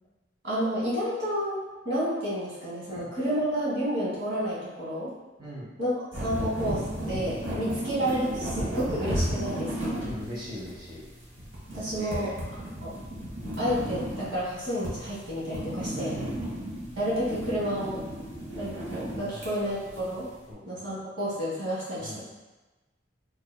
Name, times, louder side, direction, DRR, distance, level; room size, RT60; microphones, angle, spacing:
voice 1, 0.4-5.1 5.8-10.0 11.7-12.4 12.8-12.9 13.6-16.2 17.0-18.0 18.5-20.3 20.6-22.2, equal, 75° right, -8 dB, 1.4 m, -30 dB
sound 1, 6.1-20.4, equal, 90° right, 1.3 m, -35 dB
voice 2, 10.0-11.0 11.9-12.8 15.9-16.5 19.3-19.5 20.5-20.9 22.0-22.2, equal, 20° right, -8 dB, 0.7 m, -40 dB
3.9 x 2.9 x 2.2 m, 1.1 s
head